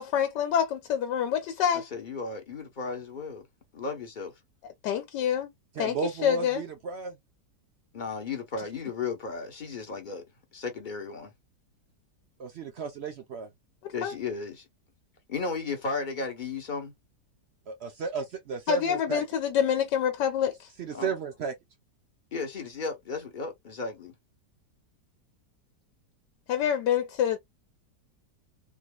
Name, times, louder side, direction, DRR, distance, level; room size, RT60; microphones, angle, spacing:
voice 1, 0.0-1.9 4.8-5.5 5.8-6.0 6.2-6.6 14.0-14.1 18.7-20.5 26.5-27.4, left 9 dB, 85° left, 1.3 m, -26 dB
voice 2, 1.7-3.4 3.7-4.3 7.9-10.2 10.5-11.3 13.9-14.6 15.3-16.9 20.9-21.1 22.3-24.1, left 4 dB, 40° left, 0.8 m, -34 dB
voice 3, 5.7-7.2 12.4-13.5 17.7-19.2 20.8-21.5, right 5 dB, 70° right, 0.6 m, -33 dB
3.8 x 3.0 x 2.2 m
omnidirectional pair, 1.8 m